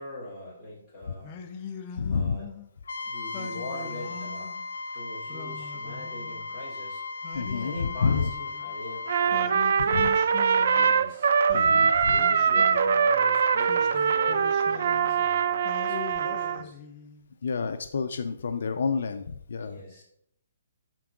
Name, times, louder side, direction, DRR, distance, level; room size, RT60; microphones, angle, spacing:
voice 1, 0.0-1.3 2.1-2.5 3.0-4.5 4.9-7.0 7.3-11.3 12.0-16.8 19.6-20.0, left 1 dB, ahead, -10 dB, 3.3 m, -42 dB
Singing, 1.2-2.7 3.3-4.7 5.3-6.6 7.2-8.7 9.3-11.1 11.5-13.1 13.6-15.3 15.6-17.3, left 6 dB, 20° left, 0.6 m, -42 dB
voice 2, 2.0-2.4 7.3-8.3 9.9-10.1 11.5-12.2 17.4-19.8, left 5 dB, 65° left, 7 dB, 0.6 m, -29 dB
Trumpet, 2.9-9.3, left 3 dB, 90° left, 0.9 m, -37 dB
Trumpet 2, 9.1-16.6, right 6 dB, 55° right, 0.5 m, -23 dB
12.0 x 4.6 x 3.8 m, 0.70 s
hypercardioid pair, 170°, 0 cm